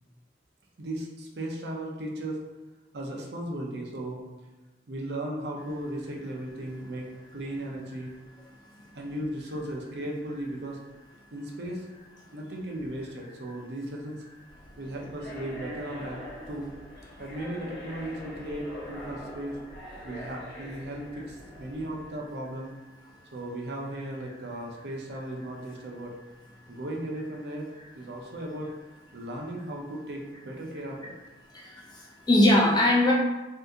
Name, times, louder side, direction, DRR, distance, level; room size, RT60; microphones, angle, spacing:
voice 1, 0.8-2.4 2.9-4.2 4.9-8.1 8.9-10.8 11.3-11.9 12.3-14.2 14.8-16.2 16.5-16.7 17.2-19.6 20.0-22.7 23.3-26.2 26.7-28.7 29.1-31.1, right 1 dB, 70° right, -1 dB, 0.6 m, -36 dB
sound 1, 14.5-22.1, equal, 70° left, 0.8 m, -43 dB
voice 2, 31.5-33.1, left 1 dB, 25° left, -3 dB, 0.5 m, -22 dB
2.7 x 2.6 x 3.5 m, 1.1 s
head